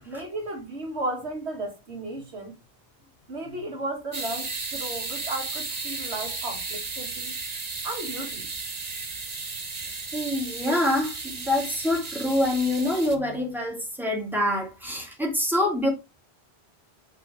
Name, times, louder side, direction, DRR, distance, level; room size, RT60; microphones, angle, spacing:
voice 1, 0.0-2.5 3.3-7.3 7.8-8.5, right 1 dB, 85° right, 2.5 m, -34 dB
sound 1, 4.1-13.1, right 4 dB, 40° right, 1.2 m, -34 dB
voice 2, 10.1-15.9, left 1 dB, ahead, 3.2 m, -26 dB
7.4 x 5.7 x 3.5 m
omnidirectional pair, 1.1 m